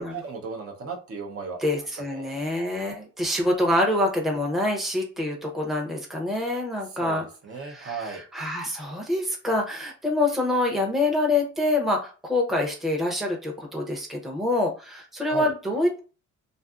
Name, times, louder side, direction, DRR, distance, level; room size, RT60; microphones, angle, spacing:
voice 1, 0.0-1.6 2.1-2.4 7.0-8.2 15.2-15.5, right 5 dB, 50° right, 1 dB, 0.7 m, -36 dB
voice 2, 1.6-7.2 7.6-16.0, left 2 dB, ahead, 1 dB, 0.6 m, -26 dB
2.6 x 2.4 x 2.4 m, 0.35 s
cardioid pair, 90°, 30 cm